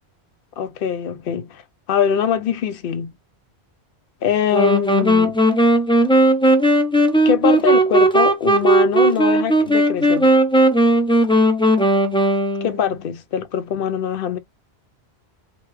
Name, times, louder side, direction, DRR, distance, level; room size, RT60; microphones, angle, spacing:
voice 1, 0.6-1.6 1.9-3.1 4.2-5.4 7.2-10.3 12.6-14.4, left 8 dB, 65° left, 0.7 m, -22 dB
sound 1, 4.5-13.0, right 1 dB, 5° left, 0.4 m, -16 dB
3.3 x 2.3 x 3.1 m
omnidirectional pair, 1.1 m